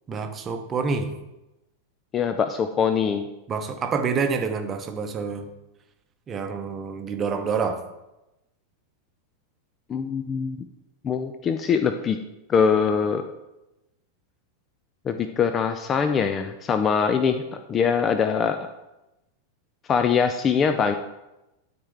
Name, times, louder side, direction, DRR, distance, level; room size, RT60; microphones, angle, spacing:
voice 1, 0.1-1.1 3.5-5.5 6.3-7.8, right 5 dB, 25° right, 7 dB, 0.8 m, -27 dB
voice 2, 2.1-3.3 9.9-10.6 11.0-12.2 12.5-13.2 15.1-17.4 17.7-18.6 19.9-20.9, left 6 dB, 25° left, 8 dB, 0.4 m, -22 dB
11.5 x 4.5 x 3.4 m, 0.96 s
figure-of-eight pair, 90°, 0 cm